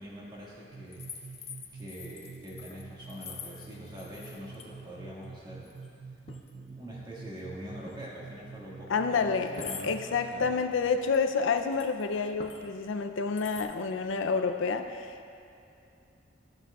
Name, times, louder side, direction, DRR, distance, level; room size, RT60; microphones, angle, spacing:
voice 1, 0.0-5.8 6.5-10.7, equal, 25° right, -6 dB, 1.7 m, -44 dB
sound 1, 0.7-10.6, right 5 dB, 60° right, 0.4 m, -48 dB
sound 2, 0.9-4.7 4.9-5.4 5.6-5.9 6.3-6.5 7.9-8.0 8.5-8.6 9.5-9.9 11.0-12.1 12.4-12.7 13.4-13.6, left 5 dB, 35° left, 0.6 m, -45 dB
voice 2, 8.9-15.3, left 5 dB, 90° left, 8 dB, 0.5 m, -29 dB
13.5 x 7.4 x 2.3 m, 2.6 s
head